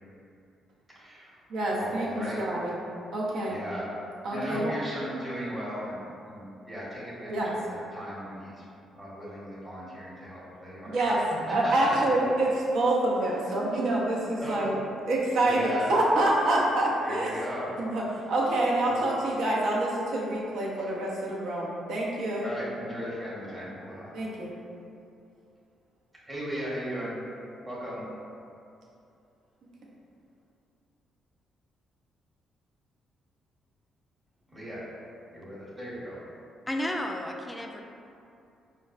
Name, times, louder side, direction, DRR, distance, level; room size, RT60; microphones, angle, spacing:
voice 1, 0.9-1.4 1.7-2.5 3.5-3.9 4.3-8.6 8.9-12.0 14.4-14.7 15.4-15.9 17.0-17.8 18.9-19.0 22.4-24.1 26.2-27.2 27.6-28.0 34.5-34.9 35.3-36.2, equal, 15° right, -8 dB, 0.9 m, -37 dB
voice 2, 1.5-2.1 2.4-2.7 3.1-3.6 4.2-4.7 7.3-7.5 10.9-11.2 11.5-14.7 15.1-17.3 17.8-18.0 18.3-22.5 24.1-24.5, right 1 dB, 75° right, -4 dB, 0.7 m, -26 dB
voice 3, 36.7-37.8, left 1 dB, 15° left, 2 dB, 0.3 m, -32 dB
5.1 x 2.2 x 2.4 m, 2.6 s
cardioid pair, 90°, 0 cm